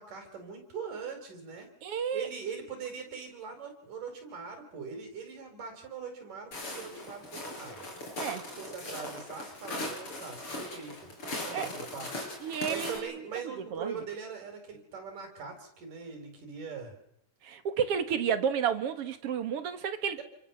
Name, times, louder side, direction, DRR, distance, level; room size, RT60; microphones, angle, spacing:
voice 1, 0.0-1.7 2.1-7.9 8.3-11.1 11.4-12.1 12.4-17.0 20.2-20.3, right 6 dB, 85° right, 5 dB, 6.4 m, -41 dB
voice 2, 1.8-2.3 8.2-8.5 11.5-11.7 12.4-13.2 13.7-14.0 17.4-20.2, right 7 dB, 55° right, 11 dB, 2.2 m, -31 dB
Walk footsteps, 6.5-13.0, left 1 dB, 40° left, 6.9 m, -39 dB
28.5 x 23.0 x 7.2 m, 0.79 s
omnidirectional pair, 3.6 m